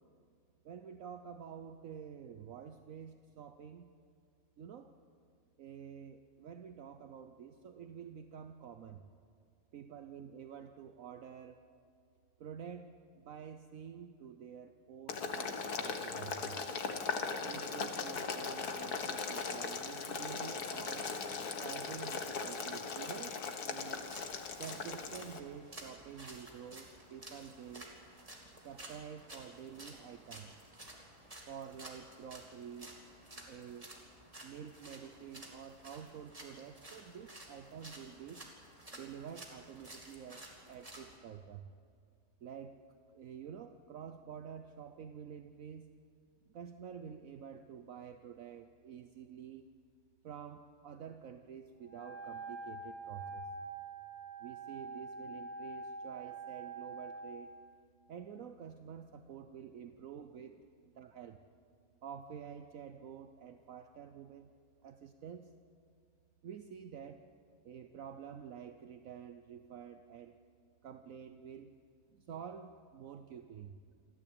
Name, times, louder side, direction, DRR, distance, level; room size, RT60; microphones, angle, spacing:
voice 1, 0.6-3.9 4.6-5.0 5.6-9.0 9.7-11.7 12.4-16.6 17.4-21.1 21.6-24.0 24.6-27.9 28.6-30.5 31.5-33.0 33.5-33.9 34.4-38.5 38.9-41.7 42.4-45.9 46.5-49.7 50.2-53.5 54.4-57.5 58.1-61.4 62.0-64.5 64.8-65.5 66.4-67.3 67.6-70.4 70.8-71.7 72.1-73.8, right 8 dB, 65° right, 8 dB, 1.2 m, -49 dB
Boiling, 15.1-25.4, left 5 dB, 85° left, 2.0 m, -39 dB
sound 1, 23.9-41.2, right 1 dB, 25° right, 2.7 m, -53 dB
Wind instrument woodwind instrument, 51.8-57.4, right 3 dB, 40° left, 7.0 m, -45 dB
27.0 x 14.0 x 8.8 m, 2.2 s
omnidirectional pair, 1.6 m